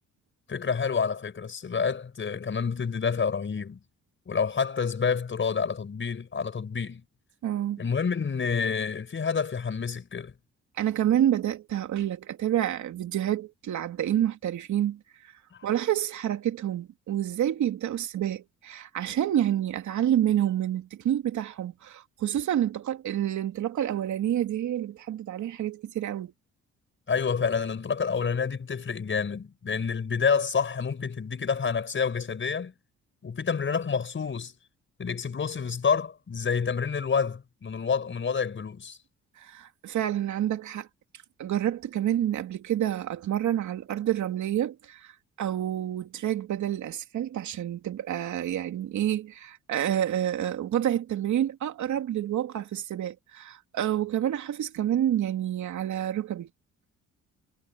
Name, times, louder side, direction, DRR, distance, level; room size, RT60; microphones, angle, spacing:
voice 1, 0.5-3.8 4.3-7.0 7.8-10.3 15.5-15.7 27.1-32.7 33.2-34.5 35.0-39.0, left 6 dB, 40° left, 5.9 m, -28 dB
voice 2, 7.4-7.8 10.8-15.3 15.6-26.3 39.4-40.9 41.4-45.1 45.4-56.5, right 11 dB, 70° right, 2.9 m, -28 dB
cardioid pair, 90°, 30 cm